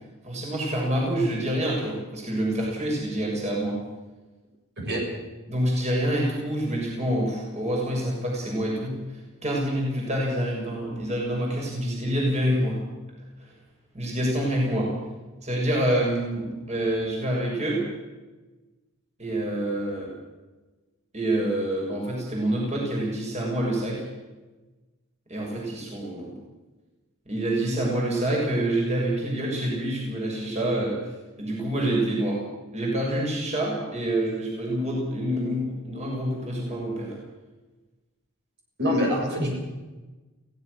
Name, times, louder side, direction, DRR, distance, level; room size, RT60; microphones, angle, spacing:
voice 1, 0.2-3.8 5.5-9.0 9.4-12.8 13.9-14.9 15.4-17.8 19.2-20.2 21.1-24.0 25.3-26.3 27.3-31.0 31.4-32.4 32.7-37.2, right 1 dB, 30° right, -2 dB, 6.5 m, -27 dB
voice 2, 38.8-39.5, equal, 50° right, 0 dB, 7.2 m, -25 dB
23.0 x 17.5 x 6.5 m, 1.2 s
head